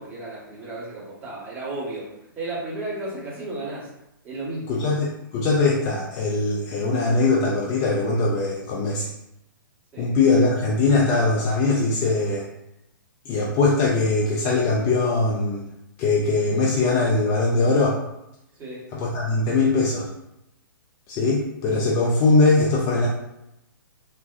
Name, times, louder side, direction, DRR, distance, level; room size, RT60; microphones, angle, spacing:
voice 1, 0.0-3.9 4.2-4.8 9.9-10.1 18.5-18.8, right 2 dB, 15° right, -9 dB, 1.4 m, -34 dB
voice 2, 4.7-9.1 10.0-12.5 13.3-15.6 16.0-18.0 18.9-20.1 21.1-23.1, left 3 dB, 25° left, -3 dB, 0.4 m, -21 dB
3.4 x 2.2 x 2.5 m, 0.84 s
figure-of-eight pair, 125°, 12 cm